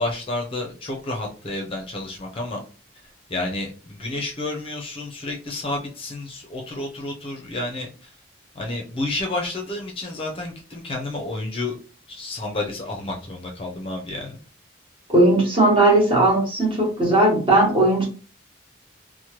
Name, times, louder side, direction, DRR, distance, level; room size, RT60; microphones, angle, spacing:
voice 1, 0.0-2.6 3.3-8.1 8.6-11.8 12.1-14.4, left 2 dB, 30° left, 1 dB, 0.5 m, -30 dB
voice 2, 15.1-18.1, right 1 dB, 25° right, -2 dB, 1.0 m, -17 dB
3.0 x 2.1 x 2.9 m, 0.36 s
head